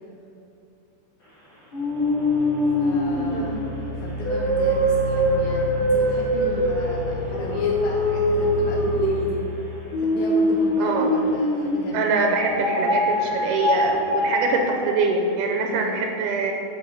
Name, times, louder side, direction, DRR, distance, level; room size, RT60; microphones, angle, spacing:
sound 1, 1.7-11.9 12.4-15.2, equal, 35° left, 1.9 m, -23 dB
voice 1, 2.8-9.4 10.0-12.4 15.7-16.1, left 1 dB, 75° left, -1 dB, 1.8 m, -35 dB
voice 2, 10.8-11.1 11.9-16.5, right 4 dB, 85° right, 2 dB, 2.2 m, -24 dB
6.5 x 4.5 x 5.4 m, 2.7 s
omnidirectional pair, 3.7 m